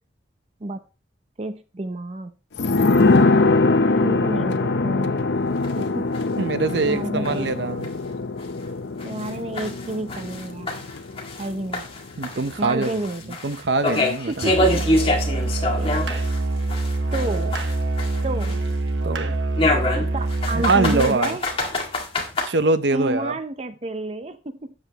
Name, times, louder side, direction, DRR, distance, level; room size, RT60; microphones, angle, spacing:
voice 1, 1.4-2.4 4.0-5.1 5.8-6.1 6.8-7.5 9.0-10.7 11.4-11.9 12.6-13.4 14.3-14.8 15.8-16.0 17.1-17.7 18.2-18.6 20.1-21.4 22.9-24.7, right 2 dB, 35° right, 0.6 m, -30 dB
sound 1, 2.6-11.9 12.2-12.3, left 3 dB, 70° left, 0.7 m, -22 dB
sound 2, 5.6-5.7 6.1-6.2 6.7-6.8 7.2-7.3 7.8-7.9 8.4-8.5 9.0-11.5 11.7-16.4 16.7-18.7 19.6-22.5, left 1 dB, 30° left, 1.9 m, -25 dB
voice 2, 6.4-7.9 12.2-12.9 13.4-14.3 19.0-19.4 20.5-21.4 22.4-23.3, right 3 dB, 70° right, 0.7 m, -23 dB
Musical instrument, 14.4-21.2, right 2 dB, 85° right, 1.1 m, -25 dB
12.5 x 8.0 x 3.0 m
head